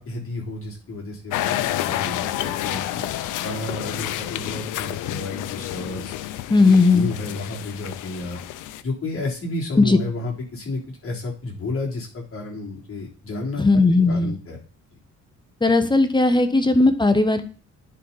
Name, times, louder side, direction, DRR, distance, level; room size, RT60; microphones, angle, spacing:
voice 1, 0.0-3.0 3.4-6.1 6.7-8.4 8.8-14.6 16.3-16.4, left 2 dB, 45° left, -2 dB, 3.5 m, -31 dB
sound 1, 1.3-8.8, left 13 dB, 90° left, 0.6 m, -29 dB
voice 2, 6.5-7.1 9.8-10.0 13.6-14.4 15.6-17.4, left 3 dB, 15° left, 9 dB, 1.1 m, -17 dB
9.9 x 4.3 x 4.1 m, 0.38 s
cardioid pair, 90°, 30 cm